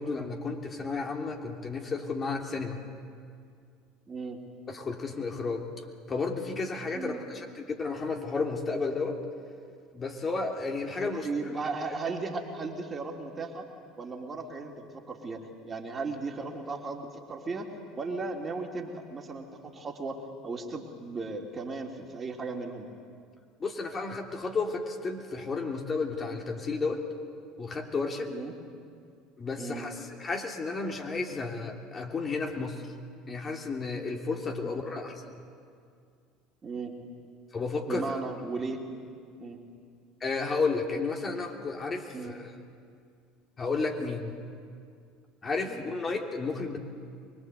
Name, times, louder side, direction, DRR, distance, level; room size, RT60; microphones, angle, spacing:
voice 1, 0.0-2.8 4.7-5.7 6.1-9.2 9.9-11.6 23.6-27.0 27.6-28.3 29.4-32.9 33.3-35.2 37.5-38.2 40.2-42.5 43.6-44.3 45.4-46.8, left 4 dB, 30° left, 2 dB, 3.0 m, -32 dB
voice 2, 4.1-4.4 6.9-7.2 11.1-13.7 14.0-22.9 28.3-28.5 29.6-29.8 34.6-34.8 36.6-36.9 37.9-38.8 39.4-39.6 42.1-42.3 45.6-45.8, right 3 dB, 30° right, 1 dB, 3.2 m, -36 dB
24.0 x 22.0 x 8.1 m, 2.3 s
hypercardioid pair, 70°, 0 cm